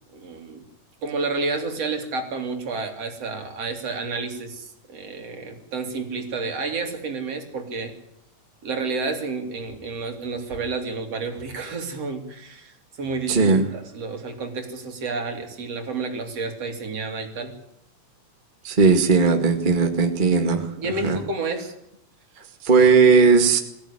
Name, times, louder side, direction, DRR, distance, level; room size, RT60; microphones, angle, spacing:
voice 1, 0.1-0.7 1.0-7.9 8.6-17.5 20.8-21.7, right 3 dB, 50° right, 5 dB, 3.7 m, -30 dB
voice 2, 13.3-13.7 18.6-21.2 22.6-23.6, right 5 dB, 20° right, 5 dB, 1.4 m, -17 dB
23.0 x 15.5 x 9.9 m, 0.77 s
omnidirectional pair, 3.7 m